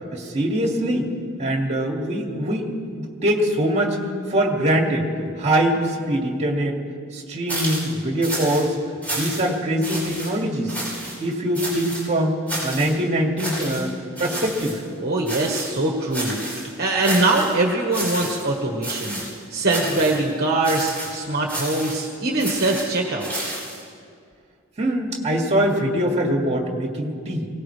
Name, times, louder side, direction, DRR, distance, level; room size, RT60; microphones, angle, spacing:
voice 1, 0.1-1.1 1.4-2.6 3.0-4.0 4.3-5.1 5.4-6.8 7.1-8.8 9.1-10.7 11.2-12.4 12.6-14.8 24.8-27.5, right 1 dB, 30° right, 0 dB, 2.3 m, -23 dB
sound 1, 7.5-7.9 8.2-8.7 9.0-9.5 9.8-10.3 10.7-11.2 11.5-12.0 12.5-12.9 13.4-13.8 14.2-14.8 15.3-15.8 16.1-16.7 17.0-17.5 17.9-18.5 18.8-19.3 19.7-20.2 20.6-21.1 21.5-22.0 22.4-23.8, right 1 dB, 10° left, 5.7 m, -30 dB
voice 2, 15.0-19.2 19.5-23.3, right 2 dB, 50° right, -1 dB, 1.5 m, -22 dB
23.5 x 18.0 x 3.4 m, 2.2 s
head